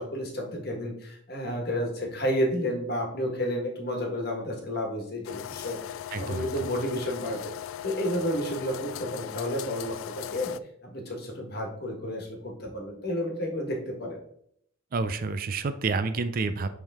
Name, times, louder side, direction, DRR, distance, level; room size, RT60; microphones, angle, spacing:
voice 1, 0.0-7.5 7.8-10.5 10.8-14.2, equal, 50° left, 1 dB, 1.5 m, -31 dB
sound 1, 5.3-10.6, left 11 dB, 85° left, 0.3 m, -38 dB
voice 2, 6.1-6.5 14.9-16.7, right 4 dB, 45° right, 11 dB, 0.4 m, -29 dB
7.8 x 3.5 x 3.6 m, 0.68 s
head